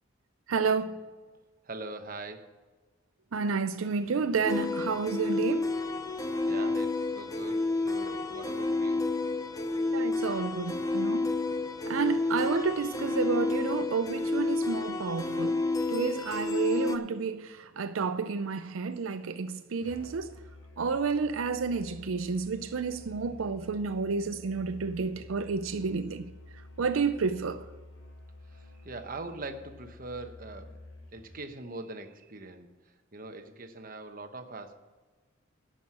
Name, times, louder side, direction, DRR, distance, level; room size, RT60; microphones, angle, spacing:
voice 1, 0.5-1.0 3.3-5.7 9.9-11.3 11.9-15.6 15.9-20.4 20.8-26.3 26.8-27.7, right 5 dB, 85° right, 0.5 m, -30 dB
voice 2, 1.6-2.6 6.5-9.1 28.5-30.8 31.1-32.7 33.1-34.8, right 2 dB, 45° right, 1.0 m, -42 dB
sound 1, 4.4-17.0, left 3 dB, 20° left, 0.6 m, -30 dB
Musical instrument, 19.8-31.5, left 2 dB, 60° left, 2.1 m, -50 dB
11.5 x 6.4 x 7.5 m
head